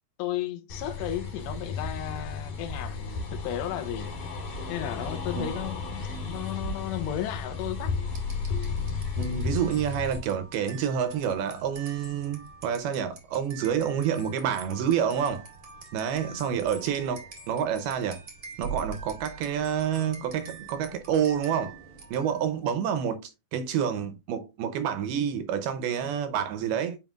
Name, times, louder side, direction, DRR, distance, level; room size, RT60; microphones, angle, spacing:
voice 1, 0.2-4.1 4.7-7.9, left 12 dB, 80° left, 2.9 m, -34 dB
sound 1, 0.7-10.2, left 4 dB, 55° left, 2.9 m, -33 dB
sound 2, 8.1-22.6, right 5 dB, 50° right, 1.0 m, -45 dB
voice 2, 9.2-15.5 15.9-18.2 18.6-21.8 22.1-27.0, right 8 dB, 80° right, 2.4 m, -28 dB
7.1 x 5.4 x 2.4 m
omnidirectional pair, 4.9 m